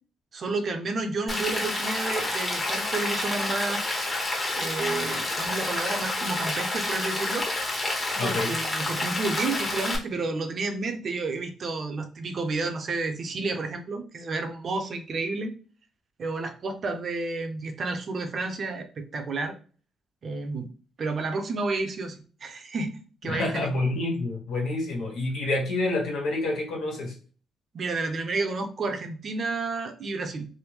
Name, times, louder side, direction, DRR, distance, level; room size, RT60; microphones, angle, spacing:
voice 1, 0.3-3.9 4.5-7.5 8.2-15.5 16.2-19.5 20.2-20.7 21.0-23.7 27.7-30.5, right 3 dB, 50° right, 6 dB, 0.6 m, -31 dB
Rain, 1.3-10.0, left 2 dB, 25° left, 1.1 m, -29 dB
voice 2, 8.2-8.5 23.2-27.1, left 2 dB, 80° left, -1 dB, 1.2 m, -28 dB
3.4 x 2.1 x 3.2 m, 0.39 s
cardioid pair, 90°, 0 cm